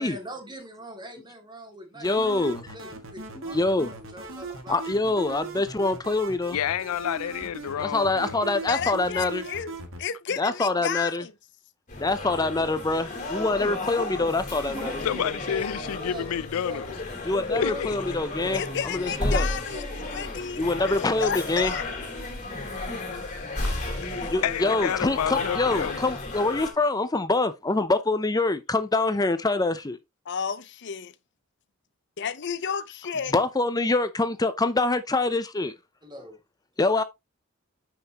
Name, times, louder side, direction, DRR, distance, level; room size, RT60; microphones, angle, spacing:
voice 1, 0.0-2.1 2.3-4.8 5.2-5.5 14.7-20.9 36.0-36.3, equal, 20° right, 2.5 m, -42 dB
voice 2, 2.0-2.6 3.3-3.9 4.7-6.6 7.8-9.4 10.4-11.2 12.0-15.0 17.2-19.5 20.6-21.7 24.3-30.0 33.3-35.7 36.8-37.0, left 2 dB, 20° left, 0.6 m, -25 dB
sound 1, 2.0-10.0, right 3 dB, 65° right, 1.9 m, -39 dB
voice 3, 6.5-8.5 15.0-16.9 17.6-18.0 24.0-26.0 36.9-37.0, left 9 dB, 90° left, 0.4 m, -30 dB
voice 4, 8.7-9.7 10.0-11.3 18.5-19.9 20.1-21.9 30.3-31.1 32.2-33.3, left 7 dB, 55° left, 0.7 m, -32 dB
sound 2, 11.9-26.7, left 2 dB, 35° left, 3.2 m, -33 dB
9.2 x 5.8 x 2.9 m
head